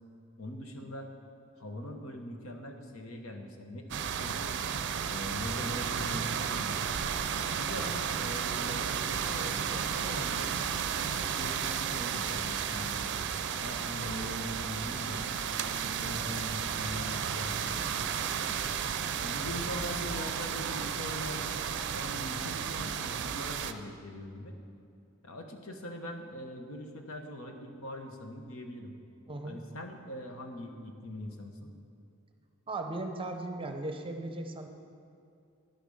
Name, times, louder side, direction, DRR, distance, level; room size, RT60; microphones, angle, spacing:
voice 1, 0.4-1.1 1.6-4.6 5.1-6.8 7.5-10.5 10.9-13.2 13.6-15.3 15.8-18.6 19.2-21.6 21.9-24.5 25.2-28.9 29.4-31.7, left 1 dB, 75° left, 4 dB, 1.2 m, -42 dB
sound 1, 3.9-23.7, right 7 dB, 55° right, 0.5 m, -33 dB
voice 2, 29.3-29.6 32.7-34.7, right 2 dB, 25° right, 5 dB, 0.7 m, -37 dB
10.5 x 8.3 x 5.5 m, 2.5 s
head